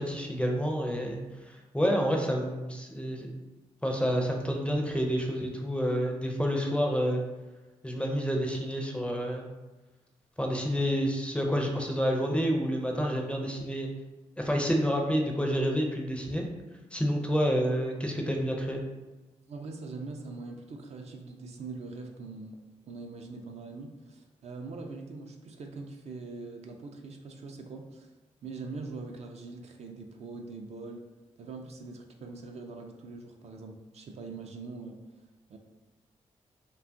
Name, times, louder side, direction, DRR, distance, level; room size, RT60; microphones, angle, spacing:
voice 1, 0.0-3.3 3.8-7.2 7.8-9.5 10.4-13.9 14.4-16.4 16.9-18.8, equal, 10° left, 1 dB, 0.4 m, -29 dB
voice 2, 19.5-22.6 22.9-28.1 28.4-31.1 31.4-35.0 35.5-35.6, right 3 dB, 55° right, 3 dB, 0.4 m, -42 dB
2.7 x 2.3 x 2.5 m, 1.1 s
cardioid pair, 65°, 13 cm